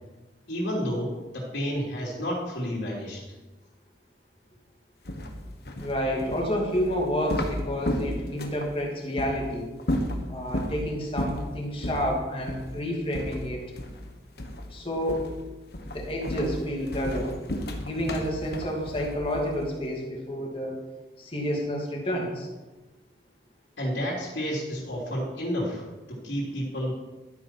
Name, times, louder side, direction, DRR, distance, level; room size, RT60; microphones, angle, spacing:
voice 1, 0.5-3.2 23.8-26.9, equal, 90° left, -4 dB, 3.1 m, -30 dB
sound 1, 5.1-8.7 9.2-9.4 9.8-10.8 11.2-11.5 11.8-12.1 12.5-12.7 13.1-14.1 14.4-14.7 15.1-15.4 15.7-19.7, equal, 60° left, 1.5 m, -32 dB
voice 2, 5.8-9.7 10.3-13.6 14.7-15.3 15.9-17.3 17.8-20.7 21.2-22.5, equal, 30° left, -1 dB, 2.8 m, -29 dB
12.0 x 9.0 x 5.8 m, 1.2 s
head